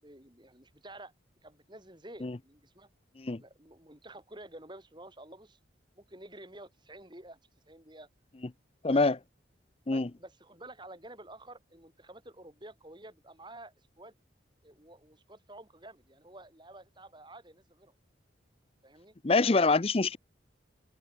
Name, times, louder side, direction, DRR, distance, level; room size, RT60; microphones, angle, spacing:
voice 1, 0.0-1.1 1.4-2.9 3.4-5.6 5.9-7.4 7.7-8.1 8.9-9.1 9.9-14.1 14.6-17.9 18.8-19.1, right 1 dB, 25° right, 7.9 m, -50 dB
voice 2, 8.8-9.2 9.9-10.1 19.2-20.2, left 3 dB, 30° left, 0.6 m, -25 dB
head